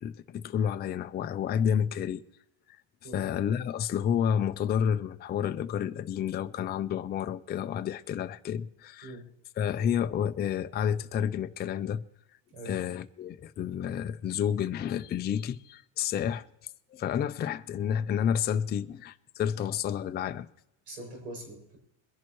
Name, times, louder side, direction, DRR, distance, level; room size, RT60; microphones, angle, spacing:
voice 1, 0.0-2.2 3.1-9.2 9.6-12.0 12.7-16.4 16.9-20.5, left 8 dB, 25° left, 0.4 m, -30 dB
voice 2, 12.5-12.8 20.9-21.8, right 1 dB, 90° right, 6.6 m, -43 dB
22.5 x 10.5 x 3.0 m
cardioid pair, 135°, 44 cm